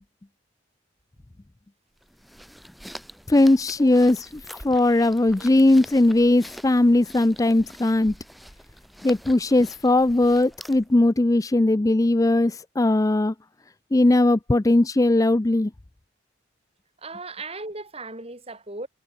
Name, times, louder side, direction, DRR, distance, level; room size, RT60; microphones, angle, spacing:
sound 1, 2.0-11.0, equal, ahead, 3.2 m, -45 dB
voice 1, 3.3-8.1 9.0-13.3 13.9-15.7, left 2 dB, 20° left, 0.4 m, -19 dB
voice 2, 17.0-18.9, right 3 dB, 30° right, 5.6 m, -37 dB
head